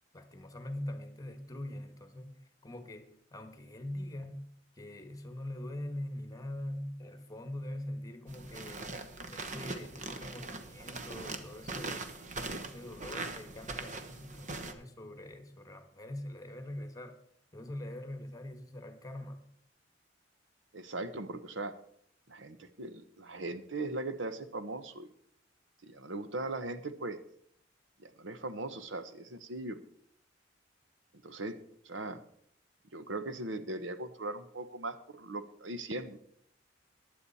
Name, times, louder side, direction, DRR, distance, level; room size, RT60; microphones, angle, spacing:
voice 1, 0.1-4.5 4.7-8.9 9.3-12.1 12.6-17.2 17.5-19.4, left 1 dB, 20° left, 1.4 m, -43 dB
sound 1, 8.3-14.7, right 3 dB, 40° right, 1.1 m, -41 dB
voice 2, 20.7-21.7 22.3-25.1 25.8-27.2 28.0-29.8 31.2-31.6 31.8-32.2 32.9-36.2, right 2 dB, 75° right, 1.0 m, -39 dB
15.5 x 10.5 x 4.2 m
head